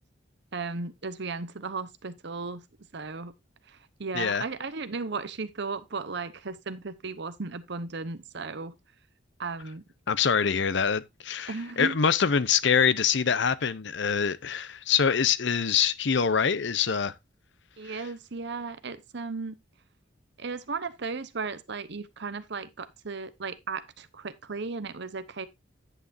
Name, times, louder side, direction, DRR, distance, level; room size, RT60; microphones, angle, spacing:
voice 1, 0.5-2.6 2.9-3.3 4.0-8.7 9.4-9.8 11.5-12.0 17.8-19.6 20.4-25.5, right 4 dB, 65° right, 0.9 m, -35 dB
voice 2, 4.1-4.4 10.1-17.1 17.8-18.0, left 6 dB, 65° left, 0.7 m, -25 dB
10.0 x 8.8 x 2.6 m
head